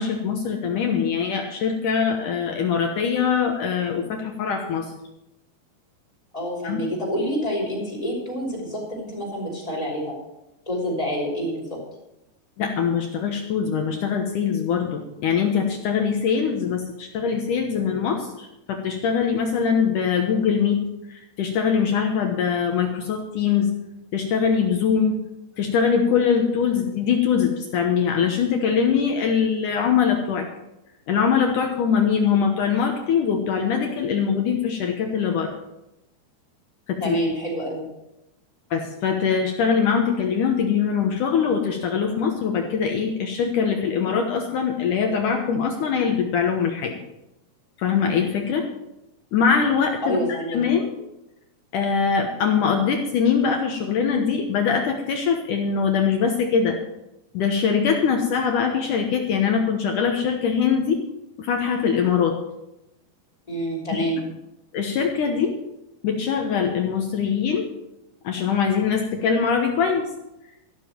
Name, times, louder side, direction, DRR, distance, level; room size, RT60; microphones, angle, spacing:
voice 1, 0.0-4.9 6.6-6.8 12.6-23.7 24.1-25.2 25.6-30.5 31.1-35.5 36.9-37.2 38.7-46.9 47.8-48.7 49.3-50.2 50.5-50.9 51.7-56.8 57.3-61.0 61.4-62.4 63.9-64.1 64.7-65.6 66.0-67.7 68.2-70.1, left 6 dB, 65° left, 3 dB, 2.3 m, -22 dB
voice 2, 6.3-10.1 10.7-11.8 37.0-37.9 50.0-50.6 63.5-64.2, equal, 10° left, -3 dB, 5.1 m, -27 dB
14.0 x 12.5 x 4.5 m, 0.90 s
omnidirectional pair, 4.6 m